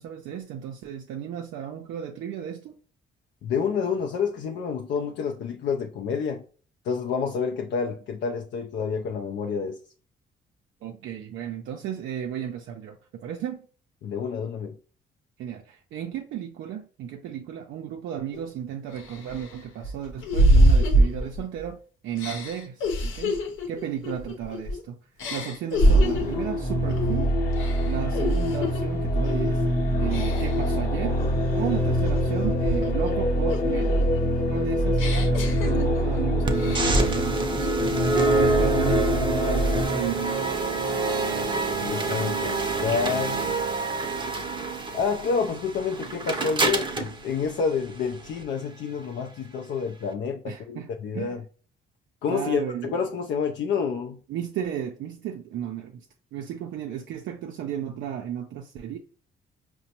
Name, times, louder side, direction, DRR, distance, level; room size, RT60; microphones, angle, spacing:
voice 1, 0.0-2.8 10.8-13.7 15.4-23.4 23.7-25.0 25.3-27.3 27.9-29.6 30.0-31.2 31.5-34.0 34.5-38.0 38.4-40.8 50.5-51.4 52.3-53.0 54.3-56.1 56.3-59.0, right 9 dB, 75° right, 0.4 m, -34 dB
voice 2, 3.4-6.4 6.8-9.8 14.0-14.8 41.8-43.4 44.9-51.4 52.2-54.2, left 6 dB, 65° left, 0.4 m, -28 dB
sound 1, 18.3-18.4 19.0-21.7 22.2-24.8 25.2-26.4 26.9-27.2 27.5-28.8 29.2-29.6 30.1-30.7 31.2-33.1 33.5-36.2 36.5-37.2, right 1 dB, 85° left, 0.8 m, -25 dB
sound 2, 25.8-39.9, equal, 45° left, 0.8 m, -25 dB
sound 3, 36.4-48.4, right 3 dB, 25° right, 0.6 m, -27 dB
4.9 x 2.1 x 2.8 m
cardioid pair, 90°, 20 cm